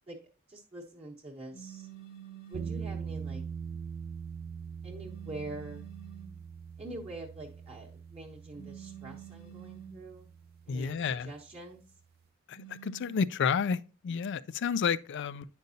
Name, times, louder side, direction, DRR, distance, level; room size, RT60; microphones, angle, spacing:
voice 1, 0.5-1.9 2.5-3.4 4.8-5.8 6.8-10.3 10.7-11.8, right 2 dB, 30° right, 1.0 m, -45 dB
sound 1, 1.5-2.9 5.0-6.4 8.5-10.1 12.5-13.2, right 10 dB, 85° left, 1.3 m, -48 dB
sound 2, 2.5-11.5, right 6 dB, 45° right, 0.3 m, -43 dB
voice 2, 10.7-11.3 12.5-15.5, left 6 dB, 60° left, 0.4 m, -31 dB
9.1 x 5.2 x 2.7 m
head